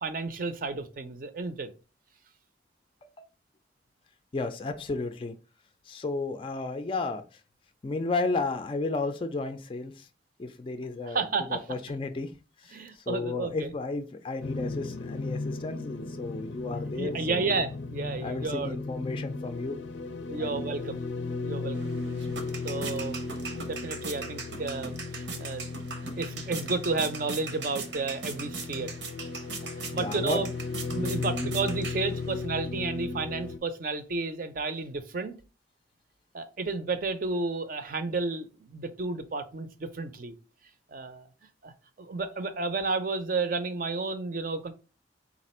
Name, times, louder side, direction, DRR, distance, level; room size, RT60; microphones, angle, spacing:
voice 1, 0.0-1.7 11.0-11.6 12.7-13.7 17.0-18.8 20.3-21.0 21.4-21.9 22.6-23.2 23.7-25.0 25.4-28.9 29.8-30.5 30.9-35.4 36.3-40.3 40.9-41.3 41.6-41.7 42.0-44.7, right 3 dB, 50° right, 0.5 m, -32 dB
voice 2, 4.3-5.3 5.9-7.2 7.8-10.1 10.4-11.2 11.5-12.3 12.6-17.6 18.2-19.8 20.4-20.6 30.0-30.4 31.0-31.5, left 3 dB, 30° left, 0.3 m, -33 dB
sound 1, 14.4-33.6, left 3 dB, 90° left, 0.5 m, -36 dB
sound 2, 21.8-32.5, right 4 dB, 85° right, 0.8 m, -40 dB
4.1 x 2.5 x 4.2 m
head